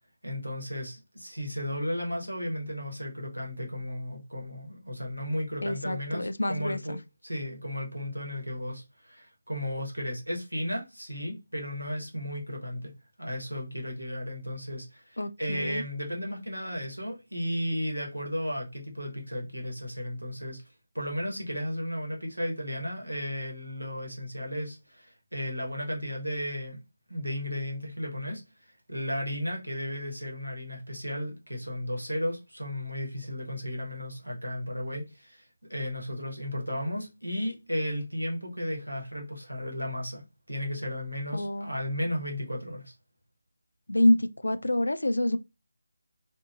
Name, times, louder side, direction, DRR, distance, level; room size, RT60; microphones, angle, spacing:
voice 1, 0.2-12.9 13.2-20.6 20.9-26.8 27.1-28.4 28.9-42.9, equal, 90° right, 1.1 m, -34 dB
voice 2, 5.6-7.0 15.2-15.8 41.3-41.7 43.9-45.4, left 1 dB, 75° left, 0.3 m, -27 dB
2.8 x 2.6 x 2.4 m
figure-of-eight pair, 155°, 0 cm